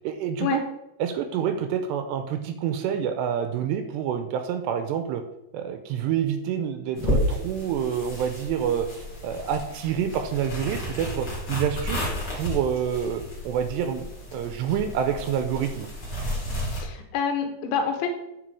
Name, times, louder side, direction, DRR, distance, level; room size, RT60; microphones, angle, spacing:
voice 1, 0.0-0.6 1.0-5.2 5.5-15.9, right 8 dB, 85° right, 7 dB, 2.6 m, -28 dB
sound 1, 7.0-16.8, left 1 dB, 35° left, 2.0 m, -32 dB
voice 2, 16.6-18.1, left 6 dB, 85° left, 5 dB, 3.5 m, -27 dB
10.0 x 4.8 x 4.7 m, 0.87 s
omnidirectional pair, 5.3 m